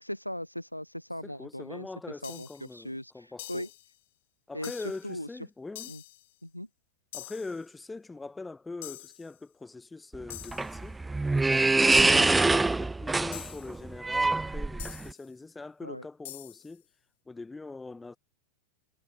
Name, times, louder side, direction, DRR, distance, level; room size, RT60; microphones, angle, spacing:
voice 1, 0.0-3.7 4.5-5.3 5.9-6.0 6.4-6.7 12.0-12.3 15.8-16.1, equal, 90° left, 0.5 m, -39 dB
voice 2, 1.2-3.6 4.5-5.9 7.1-11.0 11.5-16.8 17.3-18.2, left 3 dB, 10° left, 1.2 m, -42 dB
sound 1, 2.2-2.7 3.4-3.9 4.6-5.1 5.8-6.3 7.1-7.7 8.8-9.3 10.3-10.8 11.9-12.4 13.3-13.8 14.8-15.3 16.2-16.8, left 17 dB, 55° left, 3.6 m, -45 dB
sound 2, 10.1-15.1, right 3 dB, 10° right, 0.5 m, -25 dB
figure-of-eight pair, 90°, 0 cm